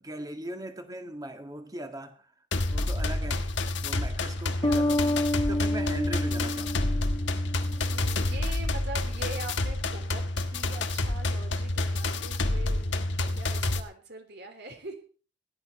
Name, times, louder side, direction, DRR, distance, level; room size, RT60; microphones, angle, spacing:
voice 1, 0.0-2.3 2.7-3.5 3.8-7.0 8.5-8.6, right 1 dB, 20° right, 6 dB, 1.8 m, -39 dB
sound 1, 2.5-13.8, left 2 dB, 65° left, 1.3 m, -29 dB
sound 2, 4.6-8.0, left 1 dB, 20° left, 0.6 m, -29 dB
voice 2, 7.7-15.0, right 2 dB, 55° right, 5 dB, 3.4 m, -43 dB
17.5 x 11.0 x 4.3 m, 0.39 s
head